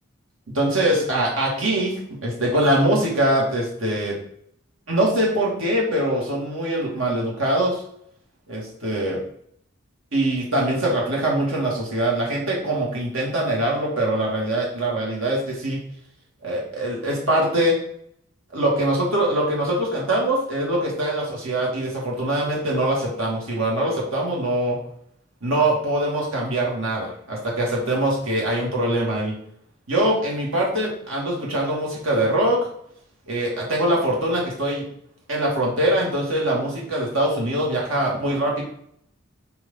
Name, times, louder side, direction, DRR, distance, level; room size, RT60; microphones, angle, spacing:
voice 1, 0.5-4.2 4.9-7.8 8.5-9.2 10.1-15.8 16.4-17.8 18.5-24.8 25.4-29.4 29.9-32.7 33.3-34.9 35.3-38.6, right 1 dB, 85° right, -3 dB, 2.4 m, -23 dB
4.9 x 4.6 x 5.7 m, 0.69 s
head